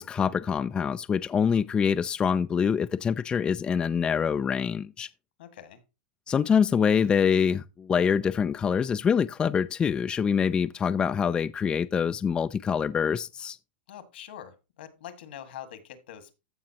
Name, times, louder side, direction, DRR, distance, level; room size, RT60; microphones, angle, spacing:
voice 1, 0.0-5.1 6.3-13.6, left 7 dB, 15° left, 0.3 m, -25 dB
voice 2, 5.4-5.8 13.9-16.3, left 10 dB, 75° left, 1.8 m, -44 dB
15.0 x 5.3 x 2.9 m
supercardioid pair, 135°, 5 cm